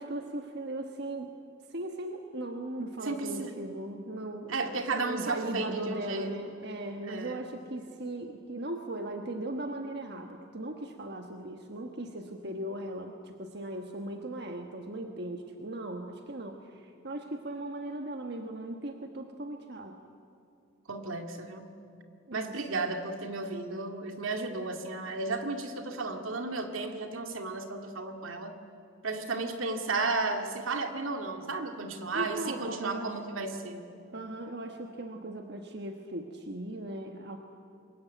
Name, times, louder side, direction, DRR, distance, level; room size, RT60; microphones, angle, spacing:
voice 1, 0.0-1.3 1.7-20.0 22.3-22.5 32.1-33.1 34.1-37.4, right 1 dB, 50° right, 4 dB, 1.3 m, -38 dB
voice 2, 3.0-3.5 4.5-6.3 7.0-7.5 20.9-21.7 22.3-28.5 29.0-33.8, right 3 dB, 75° right, 5 dB, 2.2 m, -34 dB
24.0 x 21.5 x 9.3 m, 2.5 s
head